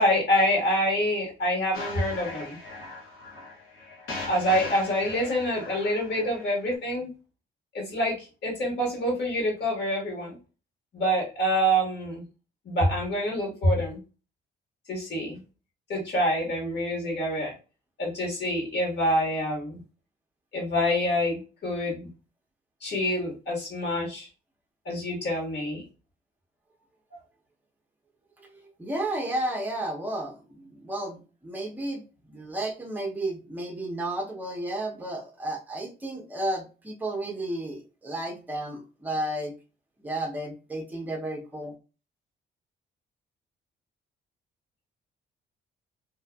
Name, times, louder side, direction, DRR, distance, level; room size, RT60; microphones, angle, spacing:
voice 1, 0.0-2.6 4.3-7.1 7.7-10.4 10.9-12.2 12.6-14.0 14.9-15.4 15.9-17.5 18.0-19.8 20.5-22.1 22.8-24.3 24.8-25.8 27.1-27.2, equal, 60° left, -1 dB, 1.4 m, -26 dB
sound 1, 1.7-6.7, left 3 dB, 85° left, 1.0 m, -39 dB
voice 2, 28.4-39.5 40.0-41.7, right 1 dB, 10° right, 1 dB, 0.6 m, -33 dB
2.6 x 2.4 x 2.2 m, 0.33 s
cardioid pair, 90°, 20 cm